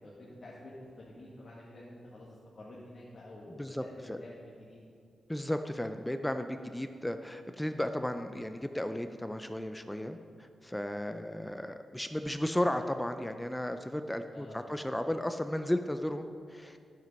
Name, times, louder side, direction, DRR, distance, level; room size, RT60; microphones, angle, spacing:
voice 1, 0.0-4.8 6.6-6.7 14.3-14.8, left 1 dB, 40° left, -6 dB, 1.5 m, -49 dB
voice 2, 3.6-4.2 5.3-16.8, left 1 dB, 5° left, 8 dB, 0.3 m, -34 dB
10.5 x 7.5 x 5.2 m, 2.3 s
wide cardioid pair, 160°, 0 cm